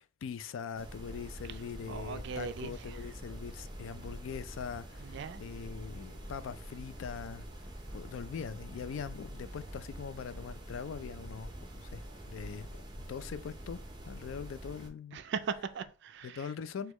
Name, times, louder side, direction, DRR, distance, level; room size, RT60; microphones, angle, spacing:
voice 1, 0.0-7.5 7.9-13.8 14.1-15.2 16.2-16.9, left 6 dB, 80° left, 0.3 m, -42 dB
sound 1, 0.7-14.9, right 1 dB, 25° right, 0.7 m, -46 dB
voice 2, 1.9-3.0 5.0-5.4 15.1-16.5, right 6 dB, 65° right, 0.3 m, -39 dB
6.2 x 2.3 x 3.0 m
head